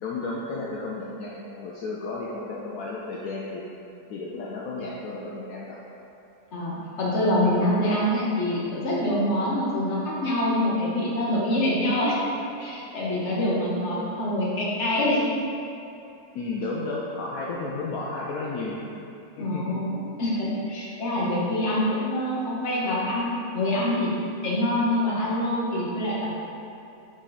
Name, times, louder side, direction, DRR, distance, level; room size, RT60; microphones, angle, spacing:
voice 1, 0.0-3.6 4.1-5.8 7.3-7.4 16.3-18.8 19.4-19.8, left 3 dB, 70° left, -4 dB, 0.8 m, -33 dB
voice 2, 6.5-12.2 12.6-15.2 19.4-24.1 24.4-26.3, left 1 dB, 45° left, -6 dB, 1.3 m, -25 dB
6.2 x 4.0 x 4.1 m, 2.7 s
omnidirectional pair, 2.0 m